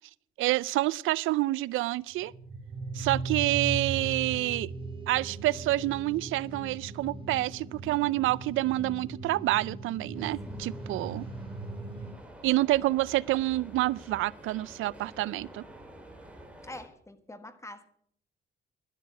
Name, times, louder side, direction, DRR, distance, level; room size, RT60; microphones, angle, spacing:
voice 1, 0.4-2.3 2.9-4.7 5.1-11.3 12.4-15.7, right 17 dB, 85° right, 0.4 m, -28 dB
sound 1, 2.3-12.1, right 3 dB, 25° right, 2.6 m, -38 dB
sound 2, 10.1-16.9, right 1 dB, 5° right, 2.8 m, -49 dB
voice 2, 10.5-11.0 16.6-17.8, left 1 dB, 15° left, 1.4 m, -46 dB
12.0 x 11.5 x 6.0 m
cardioid pair, 90°, 20 cm